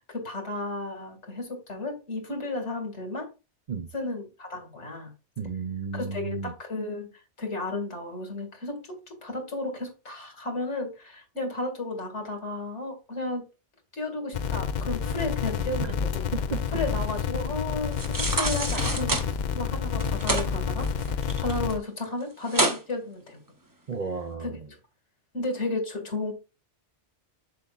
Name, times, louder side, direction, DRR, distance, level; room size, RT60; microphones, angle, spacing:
voice 1, 0.1-3.3 3.9-5.1 5.9-13.5 13.9-16.2 16.7-23.4 24.4-24.8 25.3-26.3, left 2 dB, 70° left, 2.6 m, -33 dB
voice 2, 5.4-6.5 15.8-15.9 16.5-16.6 23.9-24.7, right 5 dB, 45° right, 0.6 m, -33 dB
sound 1, 14.3-21.8, left 7 dB, 55° left, 0.5 m, -29 dB
sound 2, 17.9-19.3 19.9-20.5 20.8-21.7 22.0-22.1 22.5-22.8 23.3-23.4, right 2 dB, 20° right, 0.8 m, -27 dB
7.7 x 6.8 x 2.4 m
omnidirectional pair, 1.2 m